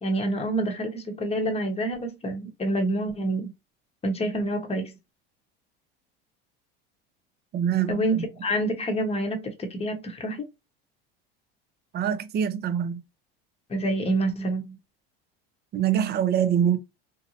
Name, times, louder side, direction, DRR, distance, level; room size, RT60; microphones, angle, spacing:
voice 1, 0.0-3.5 4.0-5.0 7.9-10.5 13.7-14.8, right 1 dB, 20° left, 0.8 m, -27 dB
voice 2, 7.5-8.3 11.9-13.0 15.7-16.8, right 9 dB, 35° right, 0.5 m, -24 dB
2.7 x 2.0 x 2.7 m
supercardioid pair, 95°, 29 cm